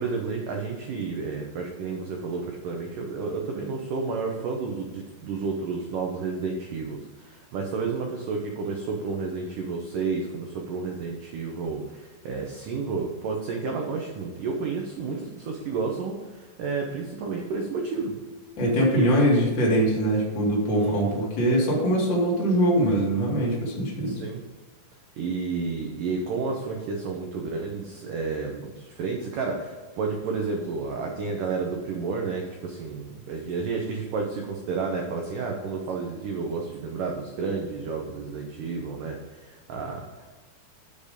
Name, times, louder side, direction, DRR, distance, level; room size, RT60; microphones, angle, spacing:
voice 1, 0.0-18.1 18.8-19.6 20.7-21.2 24.1-24.4 25.2-40.3, right 4 dB, 85° right, 1 dB, 1.9 m, -31 dB
voice 2, 18.6-24.1, equal, 35° left, -4 dB, 2.1 m, -22 dB
7.8 x 6.7 x 5.2 m, 1.3 s
omnidirectional pair, 5.1 m